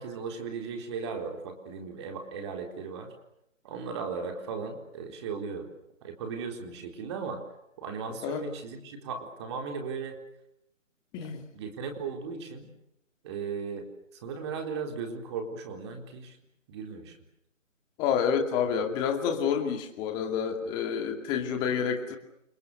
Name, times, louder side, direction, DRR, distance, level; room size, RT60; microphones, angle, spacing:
voice 1, 0.0-3.1 3.6-5.7 6.0-7.4 7.8-10.2 11.5-12.7 13.2-13.9 14.2-16.4 16.7-17.2, right 5 dB, 20° right, 4 dB, 4.1 m, -36 dB
voice 2, 11.1-11.5 18.0-22.2, left 7 dB, 10° left, 4 dB, 2.4 m, -28 dB
29.5 x 25.5 x 6.9 m, 0.80 s
figure-of-eight pair, 160°, 39 cm